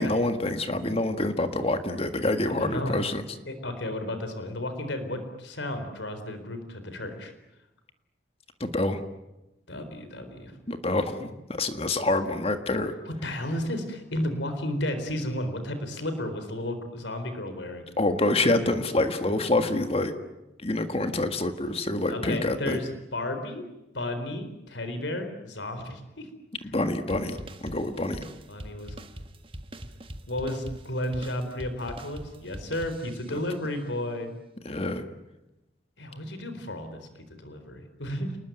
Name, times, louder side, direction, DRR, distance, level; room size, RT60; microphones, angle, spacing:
voice 1, 0.0-3.2 8.6-9.0 10.7-12.9 18.0-20.1 20.6-22.8 26.6-27.4 27.6-28.2 33.3-33.4 34.7-35.0, left 2 dB, 30° left, 8 dB, 1.7 m, -26 dB
voice 2, 2.6-3.1 3.4-7.3 9.7-10.5 13.2-17.8 22.1-23.6 23.9-26.3 26.6-26.7 28.5-28.9 30.3-34.3 36.0-38.3, left 1 dB, 85° left, 8 dB, 4.2 m, -33 dB
sound 1, 27.1-33.5, right 1 dB, 30° right, 1.6 m, -42 dB
29.0 x 20.5 x 9.3 m, 0.98 s
head